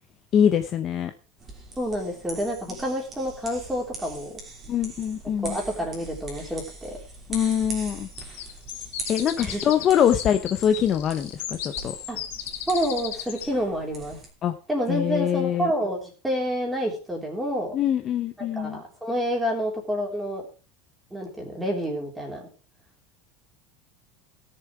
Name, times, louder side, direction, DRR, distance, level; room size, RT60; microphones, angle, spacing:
voice 1, 0.3-1.1 4.7-5.6 7.3-8.1 9.1-11.9 14.4-14.5 14.9-15.7 17.7-18.8, left 9 dB, 30° left, 8 dB, 0.7 m, -23 dB
sound 1, 1.4-14.3, right 2 dB, 20° right, 3.0 m, -41 dB
voice 2, 1.8-4.3 5.4-7.0 9.4-9.6 12.1-12.2 12.7-14.2 14.7-17.7 18.4-20.4 21.1-22.5, equal, 5° right, 0 dB, 3.4 m, -28 dB
sound 2, 8.2-13.5, left 11 dB, 75° left, 1.7 m, -36 dB
17.0 x 6.8 x 4.7 m, 0.34 s
supercardioid pair, 165°, 0 cm